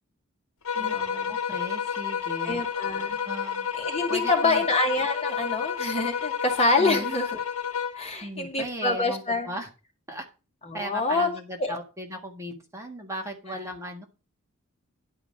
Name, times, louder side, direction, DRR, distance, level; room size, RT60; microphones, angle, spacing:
sound 1, 0.6-8.1, left 7 dB, 75° left, 1.2 m, -30 dB
voice 1, 0.8-1.3 2.4-3.2 3.8-7.4 7.9-9.5 10.7-11.3 11.6-11.7 13.5-13.6, left 3 dB, 30° left, 3 dB, 2.0 m, -26 dB
voice 2, 1.3-2.6 3.2-3.7 4.1-4.7 6.8-7.1 8.2-9.7 10.1-10.3 10.7-14.0, right 1 dB, 15° right, 2 dB, 1.6 m, -37 dB
11.0 x 5.0 x 6.5 m, 0.32 s
head